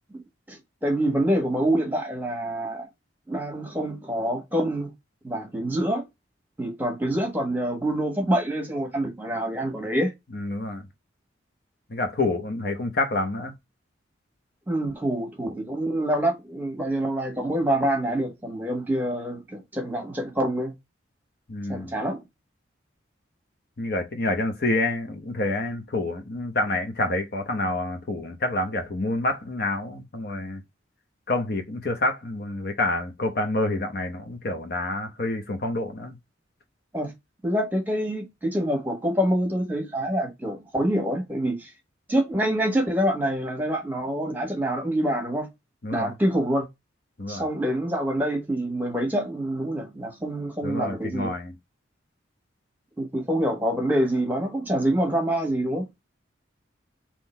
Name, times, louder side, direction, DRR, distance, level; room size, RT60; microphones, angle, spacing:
voice 1, 0.5-2.9 3.3-4.9 5.2-6.0 6.6-10.1 14.7-20.7 21.7-22.2 36.9-37.1 37.4-41.7 42.1-45.5 45.9-46.7 47.3-51.3 53.0-55.9, right 1 dB, 10° right, 1.3 m, -26 dB
voice 2, 10.3-10.9 11.9-13.5 21.5-21.9 23.8-30.6 31.3-36.2 45.8-46.1 47.2-47.4 50.6-51.5, left 2 dB, 50° left, 0.8 m, -28 dB
3.8 x 3.0 x 4.4 m
head